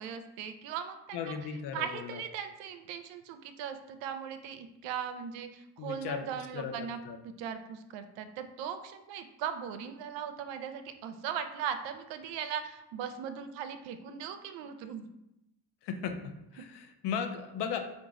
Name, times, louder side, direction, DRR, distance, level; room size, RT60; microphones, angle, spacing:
voice 1, 0.0-1.4 1.7-7.0 7.2-15.0, right 8 dB, 65° right, 9 dB, 0.6 m, -39 dB
voice 2, 1.1-2.2 5.8-6.2 6.5-7.2 15.8-17.8, left 7 dB, 60° left, 6 dB, 0.7 m, -36 dB
3.8 x 2.5 x 3.6 m, 0.87 s
hypercardioid pair, 50°, 47 cm